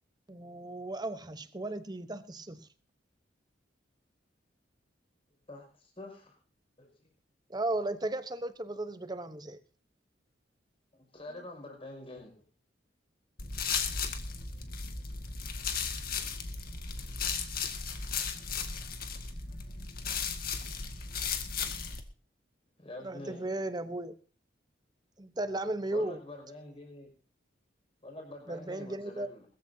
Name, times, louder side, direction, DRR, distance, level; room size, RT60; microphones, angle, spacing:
voice 1, 0.3-2.7 7.5-9.6 23.0-24.1 25.2-26.2 28.5-29.3, right 2 dB, 20° right, 1.0 m, -35 dB
voice 2, 5.5-6.3 6.8-7.1 10.9-12.4 22.8-23.4 25.9-27.1 28.0-29.5, left 2 dB, 30° left, 5.7 m, -46 dB
sound 1, 13.4-22.0, left 6 dB, 55° left, 1.9 m, -35 dB
20.5 x 14.5 x 2.8 m
head